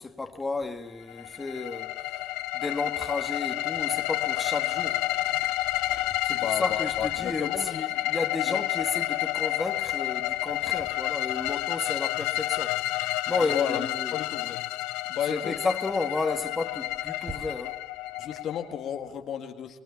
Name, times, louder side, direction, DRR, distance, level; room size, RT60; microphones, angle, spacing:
voice 1, 0.0-1.9 2.5-5.0 6.2-12.8 13.3-14.1 15.3-17.8, left 3 dB, 20° left, 2.2 m, -32 dB
Purr, 0.5-19.2, right 2 dB, 30° right, 4.3 m, -53 dB
sound 1, 1.1-18.9, left 16 dB, 80° left, 1.0 m, -30 dB
voice 2, 6.3-7.8 8.5-8.6 13.4-14.6 15.1-15.5 18.2-19.8, left 9 dB, 60° left, 2.1 m, -33 dB
25.0 x 20.0 x 7.2 m
supercardioid pair, 75°, 0 cm